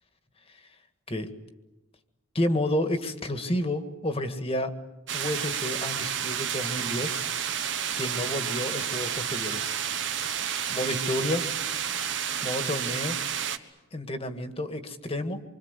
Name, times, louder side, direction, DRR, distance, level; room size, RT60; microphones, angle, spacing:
voice 1, 2.3-4.7 5.1-7.2 8.0-9.7 10.7-11.4 12.4-13.2 13.9-15.4, left 1 dB, 30° left, 8 dB, 1.8 m, -30 dB
sound 1, 5.1-13.6, right 8 dB, 60° right, 1.4 m, -30 dB
26.5 x 25.0 x 8.3 m, 1.0 s
head